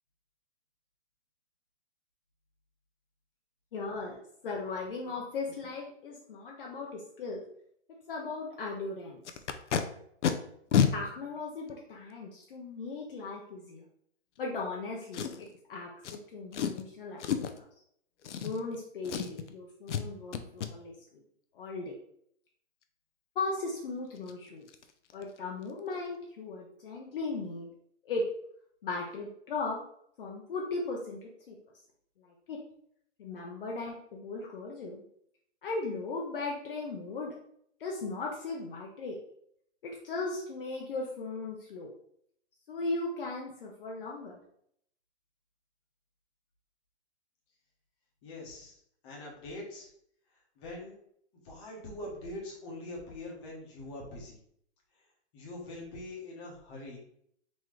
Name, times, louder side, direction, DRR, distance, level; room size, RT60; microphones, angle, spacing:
voice 1, 3.7-4.2 4.4-7.4 8.1-9.2 10.9-13.8 14.4-17.6 18.4-21.2 21.5-21.9 23.4-24.7 25.1-27.7 28.0-28.3 28.8-29.8 30.2-31.6 32.2-32.6 33.2-35.0 35.6-37.3 37.8-39.2 39.8-41.9 42.7-44.4, left 3 dB, 50° left, -1 dB, 0.7 m, -37 dB
Packing tape duct tape, 9.2-9.8 10.2-10.3 10.7-10.9 11.7-11.8 15.1-15.6 16.0-16.2 16.5-16.8 17.2-17.6 18.2-18.8 19.0-19.5 19.9-20.0 20.3-20.7 23.7-23.8 24.2-24.3 24.7-24.8 25.1-25.4 25.6-25.7, left 8 dB, 85° left, 0.6 m, -29 dB
voice 2, 48.2-48.8 49.0-49.9 50.6-51.0 51.4-54.4 54.9-55.0 55.3-57.0, left 1 dB, 25° left, -3 dB, 1.1 m, -43 dB
3.8 x 3.0 x 3.1 m, 0.69 s
hypercardioid pair, 160°, 35 cm